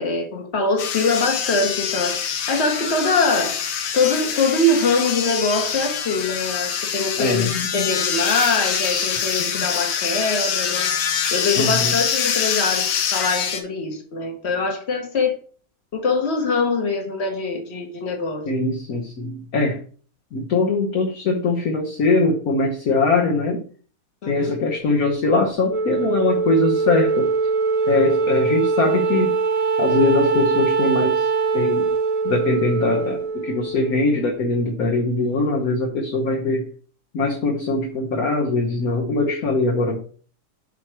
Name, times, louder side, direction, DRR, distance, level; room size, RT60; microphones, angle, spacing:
voice 1, 0.0-2.2 2.5-3.6 3.9-10.9 11.3-15.4 15.9-18.4 24.2-24.5, left 3 dB, 35° left, 1.6 m, -23 dB
sound 1, 0.8-13.6, left 7 dB, 80° left, 1.8 m, -25 dB
voice 2, 7.2-7.5 11.6-11.9 18.5-19.8 20.3-23.6 24.3-27.3 27.9-29.4 29.8-31.9 32.2-36.7 37.1-40.0, left 3 dB, 50° left, 1.3 m, -21 dB
Wind instrument woodwind instrument, 25.7-34.3, right 4 dB, 90° right, 3.1 m, -22 dB
7.9 x 3.0 x 6.0 m
omnidirectional pair, 2.3 m